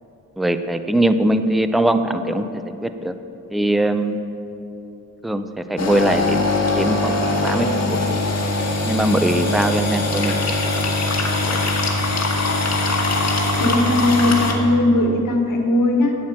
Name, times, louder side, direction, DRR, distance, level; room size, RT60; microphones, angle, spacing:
voice 1, 0.4-2.4 2.8-3.1 3.5-4.2 5.2-6.5 6.8-8.2 8.8-10.3 14.5-14.6, right 1 dB, ahead, 9 dB, 0.4 m, -21 dB
sound 1, 5.8-14.5, left 2 dB, 50° left, 1.6 m, -21 dB
voice 2, 13.6-16.2, left 2 dB, 70° left, 3 dB, 1.5 m, -18 dB
9.2 x 8.8 x 7.4 m, 2.9 s
wide cardioid pair, 115°, 33 cm